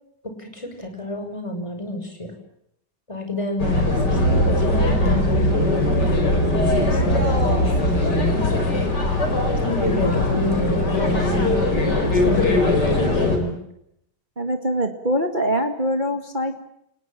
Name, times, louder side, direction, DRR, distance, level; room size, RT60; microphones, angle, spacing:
voice 1, 0.2-2.3 3.1-8.5 8.9-9.0 9.4-13.6, left 1 dB, 5° left, 5 dB, 5.7 m, -29 dB
sound 1, 3.6-13.4, left 1 dB, 25° left, 5.0 m, -20 dB
voice 2, 14.3-16.6, equal, 35° right, 6 dB, 0.7 m, -23 dB
29.5 x 19.5 x 9.0 m, 0.77 s
omnidirectional pair, 4.8 m